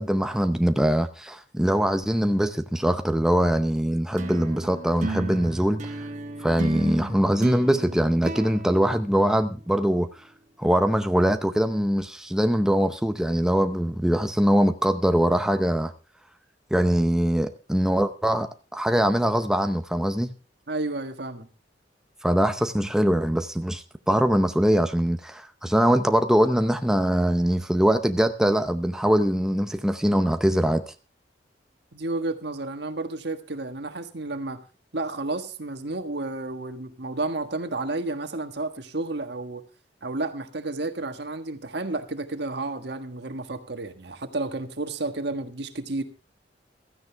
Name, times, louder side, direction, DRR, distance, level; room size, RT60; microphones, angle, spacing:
voice 1, 0.0-5.9 6.4-10.1 10.6-15.9 16.7-20.3 22.2-30.9, equal, 5° right, 7 dB, 0.6 m, -22 dB
sound 1, 4.2-9.8, right 2 dB, 45° right, 1.2 m, -35 dB
voice 2, 20.7-21.5 31.9-34.6 34.9-39.6 40.0-46.0, right 2 dB, 65° right, 7 dB, 1.5 m, -31 dB
16.0 x 13.5 x 3.4 m, 0.33 s
head